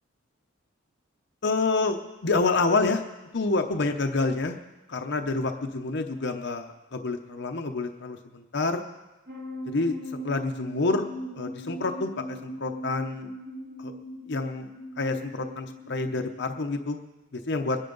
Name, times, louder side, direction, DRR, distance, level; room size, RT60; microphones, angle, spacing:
voice 1, 1.4-3.0 3.3-4.6 4.9-8.8 9.7-9.9 10.2-11.1 11.4-13.3 13.8-13.9 14.3-14.7 15.0-17.0 17.3-17.8, left 3 dB, 55° left, 4 dB, 0.7 m, -28 dB
sound 1, 9.3-16.7, equal, 55° right, 2.5 m, -39 dB
22.5 x 10.5 x 3.9 m, 1.1 s
head